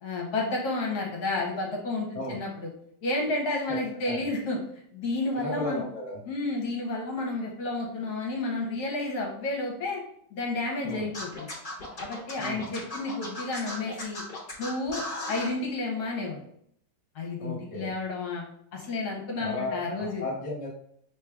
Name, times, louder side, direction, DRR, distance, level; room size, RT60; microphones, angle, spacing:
voice 1, 0.0-2.7 3.0-4.6 4.9-5.8 6.2-10.0 10.3-11.5 11.9-14.2 14.6-16.4 17.1-18.4 18.7-20.2, left 2 dB, 65° left, -1 dB, 1.2 m, -31 dB
voice 2, 5.3-6.2 10.8-11.1 12.4-12.6 17.4-17.9 19.4-20.7, left 2 dB, 25° right, -7 dB, 1.0 m, -35 dB
Scratching (performance technique), 11.1-15.5, left 1 dB, 40° left, 0.8 m, -36 dB
4.8 x 3.3 x 2.3 m, 0.68 s
omnidirectional pair, 2.0 m